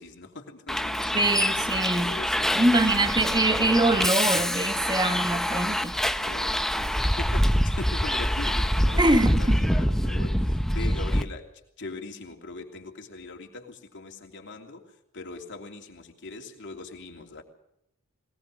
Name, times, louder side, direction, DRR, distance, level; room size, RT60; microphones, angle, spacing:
voice 1, 0.0-1.5 2.0-3.1 6.2-11.5 11.8-17.4, left 3 dB, 55° left, 3.1 m, -41 dB
Bus, 0.7-11.2, equal, ahead, 0.7 m, -25 dB
voice 2, 1.1-2.2 2.6-6.0 9.0-9.6, right 2 dB, 20° right, 1.6 m, -24 dB
21.0 x 19.5 x 6.6 m
head